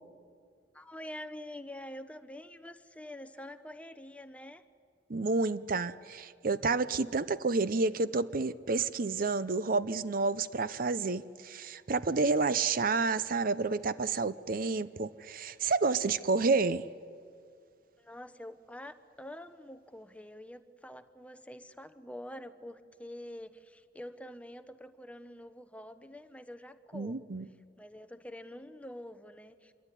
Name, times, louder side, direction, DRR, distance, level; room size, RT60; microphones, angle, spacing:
voice 1, 0.7-4.6 18.0-27.3 27.8-29.7, left 1 dB, 10° left, 1.0 m, -46 dB
voice 2, 5.1-16.9 26.9-27.5, right 4 dB, 55° right, 0.7 m, -30 dB
26.5 x 22.5 x 10.0 m
head